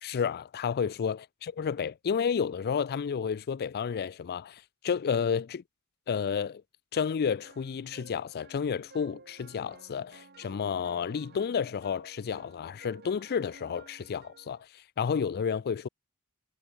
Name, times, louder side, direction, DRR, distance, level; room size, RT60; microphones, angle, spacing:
voice 1, 0.0-5.6 6.1-6.6 6.9-14.6 15.0-15.9, left 6 dB, 45° left, 0.4 m, -31 dB
sound 1, 6.9-14.6, right 3 dB, 50° right, 3.5 m, -54 dB
head